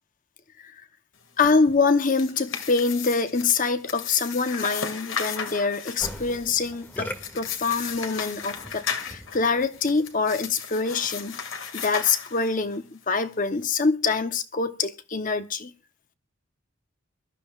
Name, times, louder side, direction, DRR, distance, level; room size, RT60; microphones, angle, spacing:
voice 1, 1.4-11.4 11.7-15.7, left 4 dB, 40° left, 0.9 m, -25 dB
sound 1, 1.9-12.8, left 6 dB, 75° left, 2.2 m, -35 dB
Musical instrument, 6.0-10.3, left 1 dB, 10° left, 2.1 m, -41 dB
23.5 x 12.5 x 2.4 m
head